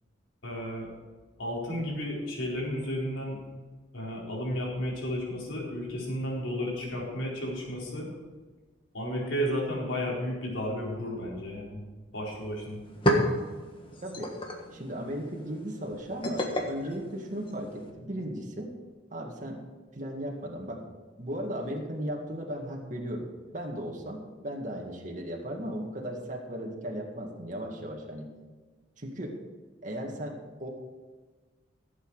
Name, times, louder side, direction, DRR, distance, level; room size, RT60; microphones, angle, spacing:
voice 1, 0.4-0.9 1.4-3.4 3.9-8.1 8.9-11.8 12.1-12.8, equal, 90° left, -4 dB, 4.4 m, -33 dB
sound 1, 12.3-12.4 12.7-17.9, equal, 30° left, 1.6 m, -32 dB
voice 2, 14.7-18.7 19.1-19.6 19.9-20.8 21.2-23.3 23.5-28.3 29.0-29.4 29.8-30.7, equal, 40° right, 0 dB, 2.0 m, -36 dB
16.0 x 8.4 x 4.9 m, 1.3 s
head